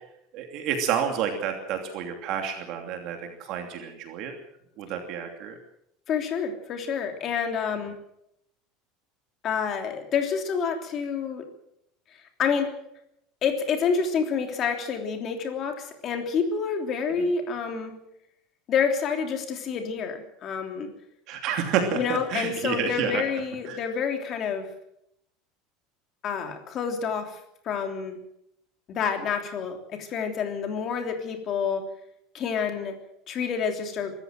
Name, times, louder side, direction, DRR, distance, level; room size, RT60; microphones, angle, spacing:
voice 1, 0.3-4.3 4.8-5.6 21.3-23.2 23.7-23.8, right 7 dB, 45° right, 4 dB, 2.9 m, -29 dB
voice 2, 6.1-8.0 9.4-11.4 12.4-12.7 13.4-17.9 18.7-20.9 21.9-24.7 26.2-27.4 27.6-28.2 28.9-31.8 32.3-32.9 33.3-34.1, left 6 dB, 30° left, 5 dB, 3.2 m, -28 dB
24.0 x 14.0 x 7.7 m, 0.76 s
cardioid pair, 175°, 0 cm